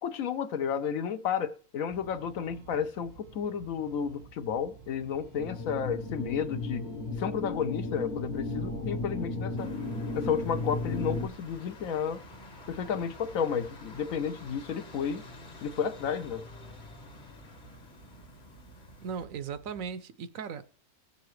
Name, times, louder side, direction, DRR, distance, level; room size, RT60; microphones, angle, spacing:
voice 1, 0.0-6.8 7.1-9.7 10.1-12.2 12.7-15.2 15.6-16.4, left 7 dB, 70° left, 1.1 m, -32 dB
sound 1, 1.9-19.9, right 6 dB, 90° right, 2.2 m, -54 dB
sound 2, 5.4-11.3, left 2 dB, 50° left, 1.2 m, -34 dB
sound 3, 9.6-19.2, left 3 dB, 35° left, 1.1 m, -50 dB
voice 2, 19.0-20.6, right 6 dB, 70° right, 1.0 m, -37 dB
17.0 x 6.9 x 3.1 m
omnidirectional pair, 1.6 m